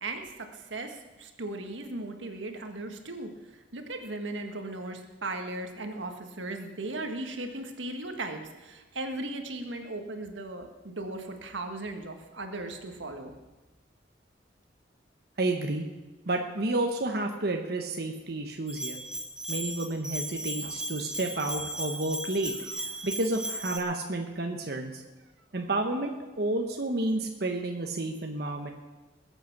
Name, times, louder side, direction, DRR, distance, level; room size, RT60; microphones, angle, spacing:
voice 1, 0.0-3.3 3.7-13.3, right 2 dB, 85° right, 5 dB, 1.6 m, -37 dB
voice 2, 15.4-15.9 16.3-19.0 19.5-25.0 25.5-28.7, right 2 dB, 55° right, 3 dB, 1.1 m, -31 dB
Bell, 18.7-23.8, right 1 dB, 5° right, 0.9 m, -36 dB
20.5 x 8.0 x 6.0 m, 1.1 s
head